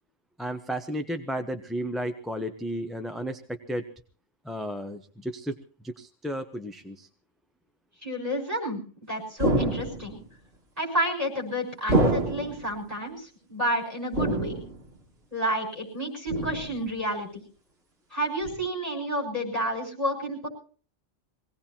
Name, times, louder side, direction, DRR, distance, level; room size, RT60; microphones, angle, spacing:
voice 1, 0.4-3.8 4.4-5.6 5.8-7.1, equal, ahead, 6 dB, 0.7 m, -33 dB
voice 2, 8.0-8.8 9.1-10.2 10.8-14.5 15.3-17.4 18.1-20.5, equal, 35° right, 0 dB, 6.2 m, -30 dB
sound 1, 9.4-10.2 11.9-12.7 14.1-14.9 16.3-16.9 18.4-18.6, right 1 dB, 60° right, 2.1 m, -26 dB
24.0 x 18.0 x 2.9 m, 0.40 s
omnidirectional pair, 1.2 m